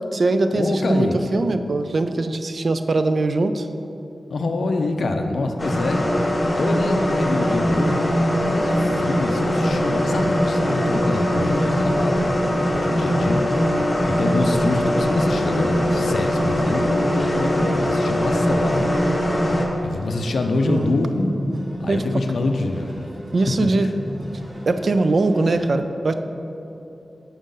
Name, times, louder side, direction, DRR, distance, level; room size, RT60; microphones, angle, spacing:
voice 1, 0.0-3.7 11.3-11.7 20.6-20.9 21.9-22.0 23.3-23.9 24.7-26.1, right 2 dB, 55° right, 9 dB, 0.3 m, -21 dB
voice 2, 0.5-1.4 4.3-6.1 6.6-8.0 8.5-18.9 19.8-21.4 21.8-22.9 23.8-23.9, left 2 dB, 80° left, 4 dB, 0.4 m, -26 dB
sound 1, 5.6-19.6, equal, 25° left, 0.9 m, -21 dB
sound 2, 8.9-25.6, equal, 40° right, 0.8 m, -35 dB
7.1 x 3.7 x 5.3 m, 2.9 s
wide cardioid pair, 105°, 0 cm